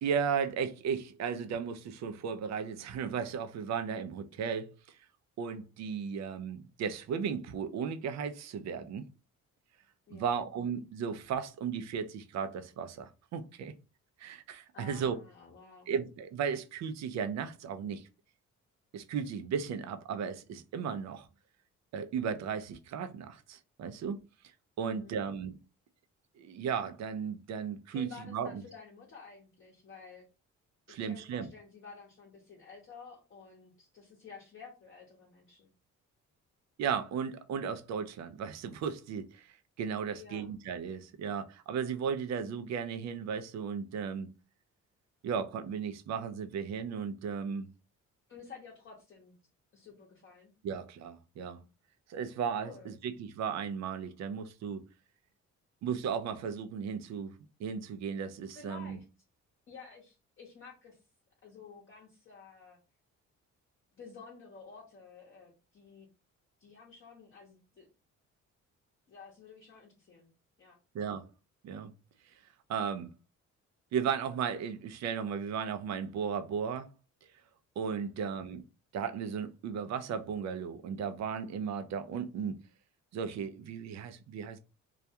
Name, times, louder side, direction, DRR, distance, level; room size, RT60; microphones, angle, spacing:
voice 1, 0.0-5.0 5.4-9.0 10.1-13.7 14.2-15.2 15.9-18.1 18.9-21.3 21.9-24.2 24.8-25.6 26.4-28.5 30.9-31.5 36.8-39.5 39.8-44.3 45.2-47.7 50.6-51.6 52.1-54.8 55.8-57.3 57.6-59.0 70.9-71.3 71.6-71.9 72.7-73.1 73.9-76.9 77.8-78.6 78.9-82.6 83.1-84.6, right 7 dB, 65° right, 0.5 m, -35 dB
voice 2, 10.1-10.4 14.7-15.9 24.8-25.2 27.9-30.2 30.9-35.7 40.1-40.5 48.3-49.3 49.7-50.5 52.6-53.0 58.5-59.0 59.7-61.0 61.4-62.8 63.9-66.1 66.6-67.9 69.1-70.3 70.6-70.8 78.0-78.3, left 5 dB, 45° left, 0.8 m, -52 dB
2.3 x 2.2 x 2.7 m
cardioid pair, 90°, 30 cm